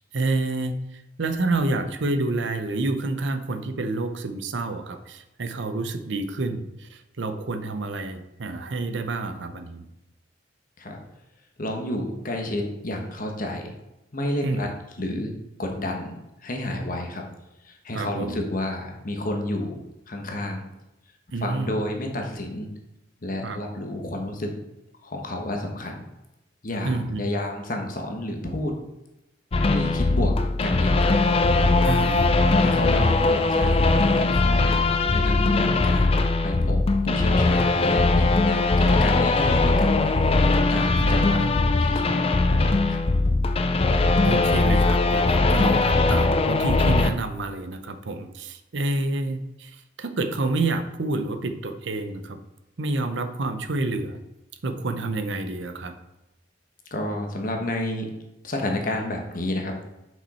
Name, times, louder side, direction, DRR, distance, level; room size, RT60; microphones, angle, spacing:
voice 1, 0.1-9.8 14.4-14.7 17.9-18.4 21.3-21.8 23.4-23.6 26.8-27.3 31.8-32.3 41.0-41.7 44.2-52.4 52.8-54.2 54.6-55.9, right 2 dB, 65° right, 8 dB, 0.7 m, -28 dB
voice 2, 11.6-13.7 14.1-14.7 15.0-16.2 16.4-17.2 17.6-20.6 21.4-22.7 23.2-24.5 25.0-26.0 26.6-28.8 29.5-31.2 32.6-33.9 34.2-40.0 40.7-41.4 41.8-43.0 56.9-58.1 58.4-59.8, left 1 dB, 45° left, 2 dB, 1.1 m, -30 dB
sound 1, 29.5-47.1, left 3 dB, 30° left, 0.4 m, -20 dB
6.1 x 5.4 x 4.2 m, 0.92 s
head